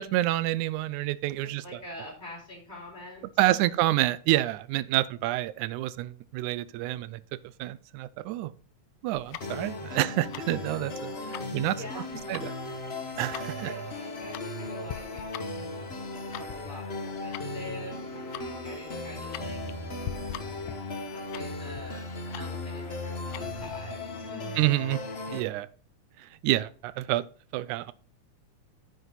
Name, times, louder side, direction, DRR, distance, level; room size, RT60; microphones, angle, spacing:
voice 1, 0.0-1.6 3.4-7.2 7.6-8.5 9.0-11.1 11.5-11.8 12.3-12.4 13.2-13.7 24.6-25.0 25.3-25.7 26.4-27.2 27.5-27.9, right 16 dB, 80° right, 2.0 m, -28 dB
voice 2, 1.4-3.8 10.9-11.3 11.7-12.4 13.5-19.6 20.5-20.6 21.1-24.5, left 1 dB, 15° left, 4.9 m, -45 dB
Tick-tock, 9.1-23.8, left 13 dB, 80° left, 1.7 m, -44 dB
sound 1, 9.4-25.4, left 2 dB, 55° left, 0.7 m, -37 dB
9.8 x 8.0 x 4.0 m
omnidirectional pair, 3.6 m